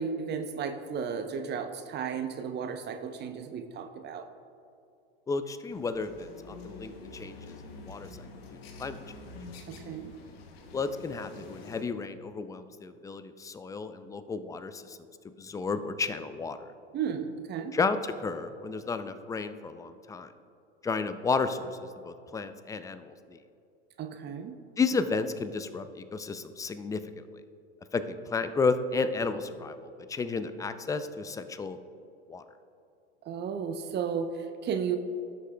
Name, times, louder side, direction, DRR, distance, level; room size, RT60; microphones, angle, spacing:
voice 1, 0.0-4.3 9.7-10.1 16.9-17.7 24.0-24.6 33.2-35.0, right 6 dB, 35° right, 7 dB, 0.7 m, -34 dB
voice 2, 5.3-7.5 7.8-8.3 8.8-9.0 10.7-15.0 15.4-16.7 17.7-20.3 20.8-21.8 22.0-23.4 24.8-27.3 27.9-29.7 30.1-31.8 32.3-32.4, left 4 dB, 10° left, 11 dB, 0.4 m, -32 dB
sound 1, 5.7-11.8, left 3 dB, 70° left, 1.2 m, -47 dB
15.5 x 6.6 x 2.2 m, 2.6 s
hypercardioid pair, 95°, 31 cm